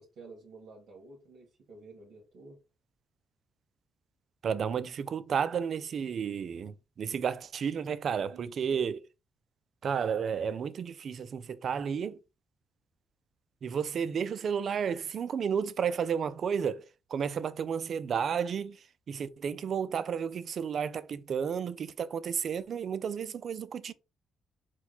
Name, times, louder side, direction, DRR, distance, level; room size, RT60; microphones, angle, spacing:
voice 1, 0.0-2.6 8.2-8.9, right 3 dB, 75° right, 1.3 m, -51 dB
voice 2, 4.4-9.0 9.8-12.2 13.6-23.9, right 7 dB, 55° right, 0.4 m, -32 dB
4.5 x 2.2 x 3.9 m
cardioid pair, 90°, 0 cm